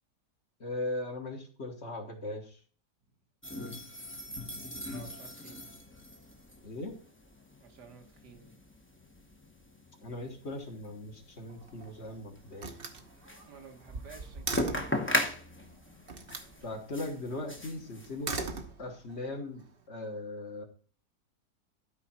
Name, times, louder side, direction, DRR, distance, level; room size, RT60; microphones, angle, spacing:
voice 1, 0.6-2.6 6.6-7.0 10.0-12.7 16.6-18.3 18.8-20.6, left 2 dB, 45° left, 3 dB, 1.6 m, -39 dB
sound 1, 3.4-18.5, left 1 dB, 10° left, 0.8 m, -39 dB
voice 2, 4.9-5.7 7.6-8.6 13.5-15.1 15.6-16.0 16.6-16.8, right 6 dB, 80° right, 3 dB, 2.0 m, -53 dB
Slam, 11.5-12.1 12.6-15.0 16.1-16.5 18.0-19.2, right 4 dB, 40° right, 1.1 m, -39 dB
12.5 x 5.0 x 4.3 m, 0.43 s
omnidirectional pair, 1.7 m